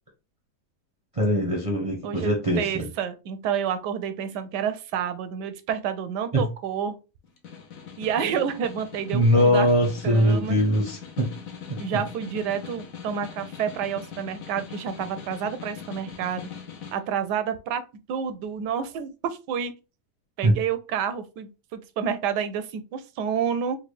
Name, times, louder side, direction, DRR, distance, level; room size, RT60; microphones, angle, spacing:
voice 1, 1.1-2.9 6.3-6.5 9.1-11.3 11.7-11.8 20.4-20.5, equal, 35° right, 0.5 m, -21 dB
voice 2, 2.0-7.0 8.0-9.7 10.0-10.6 11.8-16.5 16.9-17.8 18.1-19.7 20.4-23.8, right 8 dB, 85° right, 1.2 m, -29 dB
Snare drum, 7.2-17.0, left 7 dB, 65° left, 1.1 m, -41 dB
4.0 x 2.3 x 3.1 m
omnidirectional pair, 1.8 m